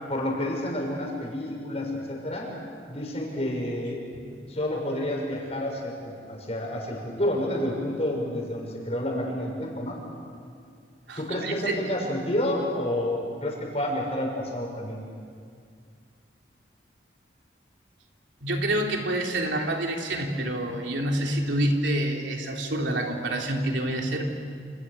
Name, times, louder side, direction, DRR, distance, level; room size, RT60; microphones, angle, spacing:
voice 1, 0.1-2.5 2.9-4.0 4.5-10.0 11.2-15.0, left 1 dB, 35° left, -1 dB, 6.7 m, -29 dB
voice 2, 11.1-11.9 18.4-24.3, right 1 dB, 90° right, 1 dB, 3.4 m, -27 dB
29.0 x 29.0 x 6.9 m, 2.2 s
head